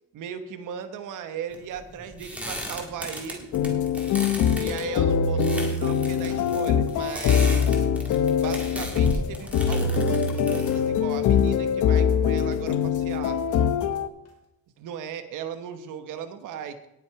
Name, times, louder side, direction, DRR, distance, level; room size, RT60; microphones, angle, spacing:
voice 1, 0.1-3.5 4.6-7.9 8.3-13.6 14.8-16.9, right 8 dB, 85° right, 8 dB, 1.1 m, -37 dB
sound 1, 1.5-11.9, equal, 5° right, 1.9 m, -37 dB
sound 2, 3.5-14.1, left 7 dB, 75° left, 0.9 m, -23 dB
sound 3, 7.1-7.7 8.4-9.0 9.7-10.2 11.1-11.4 12.5-12.8 14.1-14.5, left 1 dB, 55° left, 2.2 m, -46 dB
18.0 x 6.1 x 4.7 m, 0.85 s
cardioid pair, 175°, 30 cm